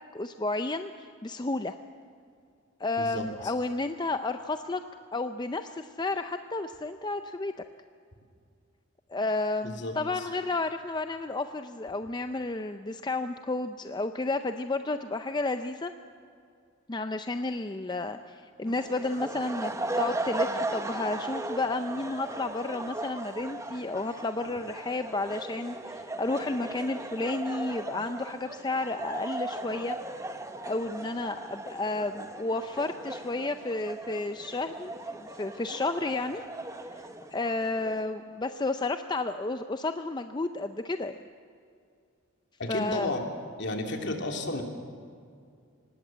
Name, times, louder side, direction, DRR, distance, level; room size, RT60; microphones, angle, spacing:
voice 1, 0.1-1.7 2.8-4.8 5.1-7.5 9.1-15.9 16.9-30.0 30.6-36.4 37.3-41.2 42.7-43.1, left 2 dB, 20° left, 8 dB, 0.5 m, -32 dB
voice 2, 9.6-9.9 42.6-43.3 43.6-44.6, left 2 dB, 55° left, 3 dB, 2.8 m, -32 dB
sound 1, 18.6-38.0, right 2 dB, 15° right, 1.1 m, -37 dB
25.0 x 19.0 x 7.5 m, 2.3 s
head